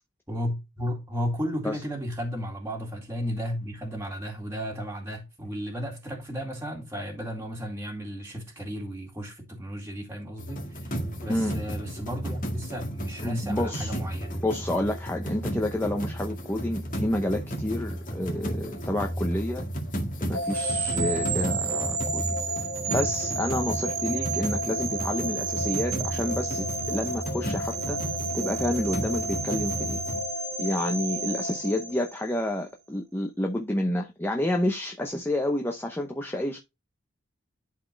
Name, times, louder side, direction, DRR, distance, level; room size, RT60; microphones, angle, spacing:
voice 1, 0.3-10.9 11.2-14.4, equal, 10° right, 2.2 m, -34 dB
sound 1, 10.4-30.2, right 1 dB, 40° left, 1.8 m, -33 dB
voice 2, 13.2-14.0 14.3-19.6 20.3-22.2 22.9-30.0 30.6-36.6, left 1 dB, 10° left, 0.7 m, -29 dB
sound 2, 20.3-32.5, right 3 dB, 80° right, 1.8 m, -31 dB
11.5 x 4.2 x 3.2 m
head